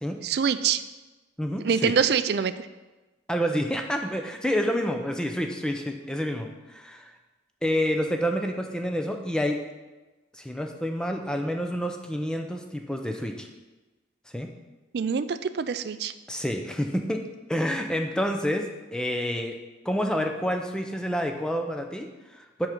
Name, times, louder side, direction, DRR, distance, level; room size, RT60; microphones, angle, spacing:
voice 1, 0.2-0.8 1.6-2.7 14.9-16.1, right 6 dB, 60° right, 12 dB, 0.3 m, -25 dB
voice 2, 1.4-1.9 3.3-7.1 7.6-9.6 10.3-13.5 14.3-14.5 16.3-17.2 17.5-19.6 19.8-22.7, equal, 5° left, 4 dB, 0.5 m, -28 dB
6.3 x 4.9 x 5.8 m, 1.2 s
head